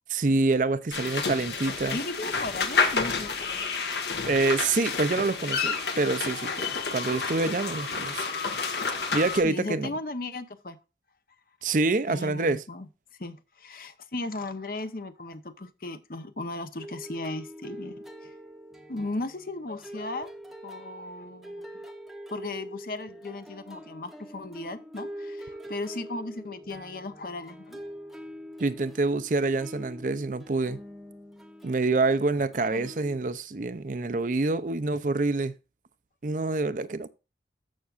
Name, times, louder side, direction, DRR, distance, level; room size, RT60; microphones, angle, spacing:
voice 1, 0.1-2.0 4.3-8.3 9.1-10.0 11.6-12.6 28.6-30.8 31.6-35.5 36.2-37.1, right 3 dB, 45° right, 0.5 m, -26 dB
sound 1, 0.9-9.4, left 5 dB, 75° left, 1.6 m, -30 dB
voice 2, 1.9-3.5 9.4-10.8 12.1-12.9 13.2-18.3 18.9-20.3 20.6-21.9 22.3-27.8 32.7-32.9, left 2 dB, 55° left, 0.9 m, -36 dB
sound 2, 16.8-33.2, equal, ahead, 0.8 m, -44 dB
14.0 x 5.9 x 2.5 m
head